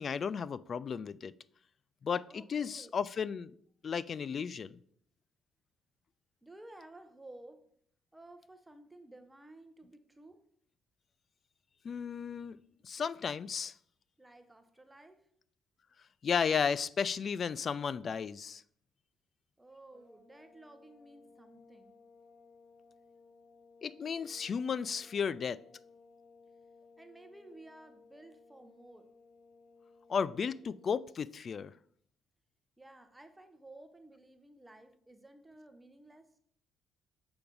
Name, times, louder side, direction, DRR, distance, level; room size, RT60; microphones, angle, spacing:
voice 1, 0.0-1.3 2.0-3.6 3.8-4.7 11.8-13.7 16.2-18.6 23.8-25.6 30.1-31.7, left 6 dB, 45° left, 0.4 m, -34 dB
voice 2, 2.3-2.9 6.4-7.7 8.1-10.5 14.2-15.3 19.6-21.9 27.0-29.1 32.8-36.4, right 2 dB, 10° right, 0.9 m, -54 dB
sound 1, 19.9-31.0, left 4 dB, 85° left, 3.0 m, -60 dB
6.9 x 5.8 x 5.3 m
cardioid pair, 90°, 0 cm